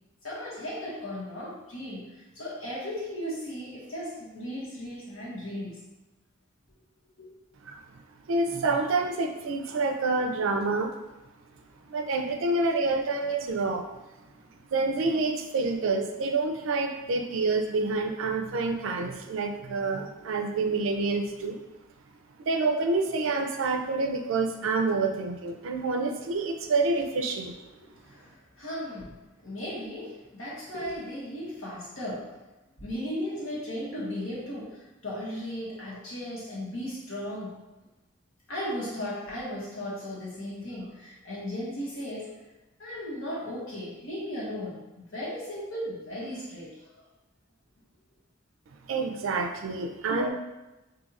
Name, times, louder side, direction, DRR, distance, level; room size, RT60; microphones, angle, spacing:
voice 1, 0.2-5.8 7.2-7.3 27.7-32.3 32.8-37.6 38.5-42.3 42.8-47.0, equal, 75° left, -7 dB, 1.3 m, -36 dB
voice 2, 8.3-10.9 11.9-13.9 14.7-21.6 22.4-27.6 48.9-50.3, right 3 dB, 75° right, 5 dB, 0.4 m, -27 dB
2.7 x 2.4 x 4.0 m, 1.1 s
head